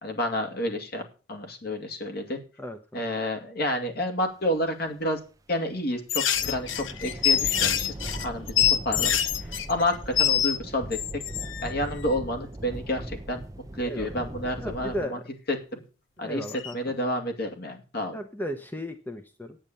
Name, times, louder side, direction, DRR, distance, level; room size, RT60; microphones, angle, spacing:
voice 1, 0.0-1.0 1.3-2.4 2.9-5.2 5.5-6.7 7.0-7.9 8.2-9.3 9.7-11.0 11.6-13.4 13.8-15.2 15.5-15.8 16.2-16.4 16.7-18.1, left 1 dB, 55° left, 4 dB, 2.3 m, -29 dB
voice 2, 2.6-3.0 13.8-14.3 14.6-15.2 16.2-17.0 18.1-19.6, equal, 10° left, 6 dB, 0.9 m, -35 dB
sound 1, 6.1-10.6 10.9-11.7 16.5-16.7, left 9 dB, 80° left, 0.9 m, -25 dB
sound 2, 6.3-15.1, right 1 dB, 20° right, 0.7 m, -39 dB
9.0 x 8.9 x 6.8 m, 0.35 s
head